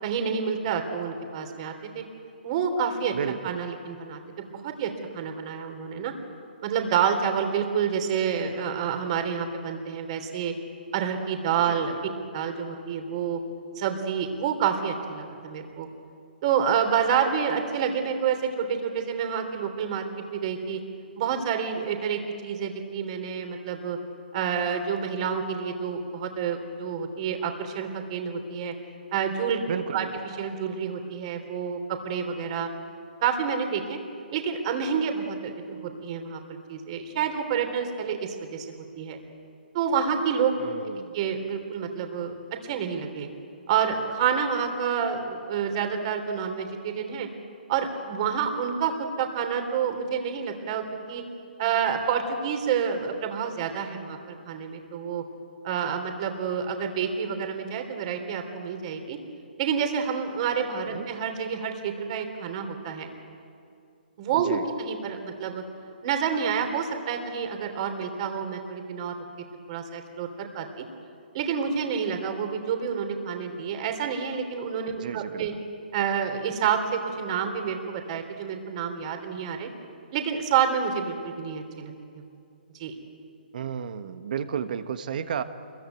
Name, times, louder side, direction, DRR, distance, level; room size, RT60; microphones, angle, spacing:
voice 1, 0.0-2.0 2.4-3.1 3.4-6.1 6.6-10.5 10.9-11.9 12.3-13.4 13.7-15.9 16.4-20.8 21.2-24.0 24.3-28.7 29.1-29.6 29.9-30.1 30.4-32.7 33.2-34.0 34.3-36.4 36.7-39.2 39.7-40.5 41.1-42.3 42.6-43.3 43.7-47.3 47.7-51.2 51.6-55.2 55.6-59.2 59.6-63.1 64.2-65.6 66.0-69.1 69.7-70.8 71.3-75.5 75.9-79.7 80.1-81.9 82.8-82.9, right 7 dB, 35° right, 6 dB, 3.4 m, -28 dB
voice 2, 3.1-3.6 11.6-11.8 29.7-30.1 40.6-41.1 60.9-61.1 64.3-64.6 75.0-75.5 83.5-85.4, right 8 dB, 55° right, 10 dB, 1.5 m, -32 dB
26.0 x 22.5 x 9.2 m, 2.5 s
hypercardioid pair, 150°, 6 cm